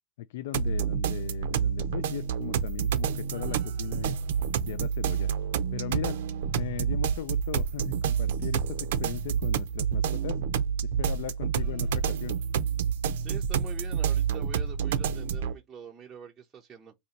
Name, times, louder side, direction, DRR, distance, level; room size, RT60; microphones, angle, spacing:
voice 1, 0.2-4.2 4.7-5.3 5.7-6.2 6.5-10.4 10.8-12.4, left 12 dB, 80° left, 0.3 m, -38 dB
sound 1, 0.5-15.5, right 7 dB, 90° right, 0.5 m, -28 dB
voice 2, 13.2-16.9, right 7 dB, 15° right, 0.5 m, -45 dB
2.7 x 2.6 x 4.3 m
supercardioid pair, 165°, 0 cm